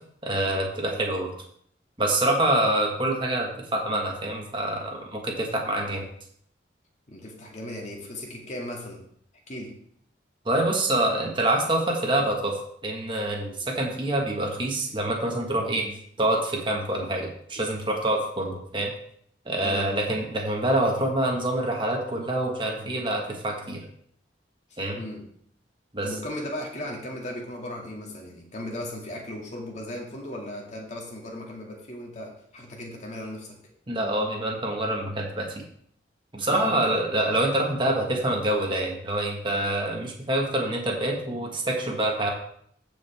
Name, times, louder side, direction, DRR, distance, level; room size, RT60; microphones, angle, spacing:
voice 1, 0.2-1.3 2.0-6.1 10.4-18.9 19.4-23.8 24.8-25.0 25.9-26.1 33.9-35.6 36.3-42.3, right 1 dB, 30° right, 0 dB, 1.6 m, -26 dB
voice 2, 7.1-9.0 9.5-9.7 19.6-20.0 24.7-25.2 26.0-33.6 36.5-36.8, left 1 dB, 40° left, -1 dB, 2.2 m, -37 dB
14.5 x 5.1 x 3.5 m, 0.66 s
head